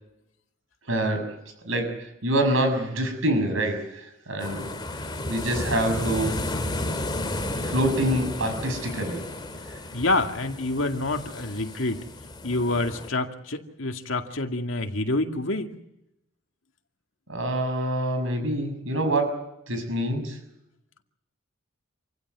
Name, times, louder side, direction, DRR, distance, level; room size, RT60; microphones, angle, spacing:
voice 1, 0.9-1.4 1.6-4.7 5.3-6.4 7.6-9.8 17.3-20.4, right 1 dB, 75° right, 7 dB, 6.3 m, -26 dB
sound 1, 4.4-13.1, left 1 dB, 20° left, 2.5 m, -33 dB
voice 2, 9.9-12.1 12.4-15.7, left 2 dB, 70° left, 4 dB, 2.2 m, -27 dB
27.5 x 16.0 x 9.4 m, 0.85 s
head